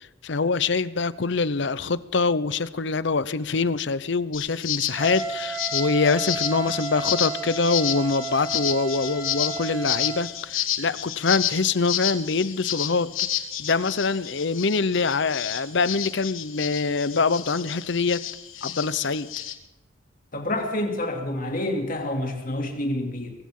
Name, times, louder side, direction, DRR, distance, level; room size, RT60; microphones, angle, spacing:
voice 1, 0.0-13.2 13.6-18.3 18.6-19.3, left 4 dB, 60° left, 17 dB, 0.7 m, -24 dB
sound 1, 4.3-19.5, left 11 dB, 85° left, 1.5 m, -31 dB
Wind instrument woodwind instrument, 5.0-10.3, right 5 dB, 10° right, 3.2 m, -33 dB
voice 2, 20.3-23.3, left 1 dB, 45° left, 3 dB, 2.7 m, -28 dB
23.0 x 16.0 x 3.8 m, 1.1 s
head